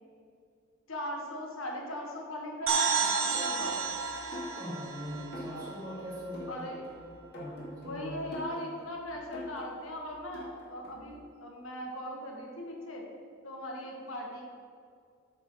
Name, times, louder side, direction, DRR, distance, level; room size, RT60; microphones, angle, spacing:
voice 1, 0.9-3.8 6.5-6.8 7.8-13.1 13.4-14.4, equal, 70° left, 0 dB, 1.4 m, -39 dB
sound 1, 2.7-6.3, right 5 dB, 65° right, 1.1 m, -31 dB
sound 2, 3.3-11.1, equal, 50° left, 2.1 m, -45 dB
voice 2, 4.6-6.7 7.3-8.3, equal, 20° right, -6 dB, 2.0 m, -41 dB
8.8 x 3.8 x 6.1 m, 2.4 s
head